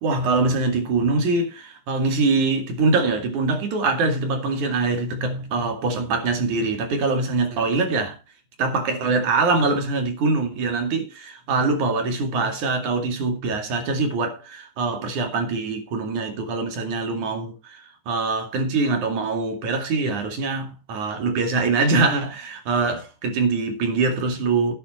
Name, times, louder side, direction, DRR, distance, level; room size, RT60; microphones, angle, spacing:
voice 1, 0.0-8.2 8.6-24.7, right 3 dB, 65° right, 3.8 m, -23 dB
11.0 x 10.5 x 4.3 m
omnidirectional pair, 3.8 m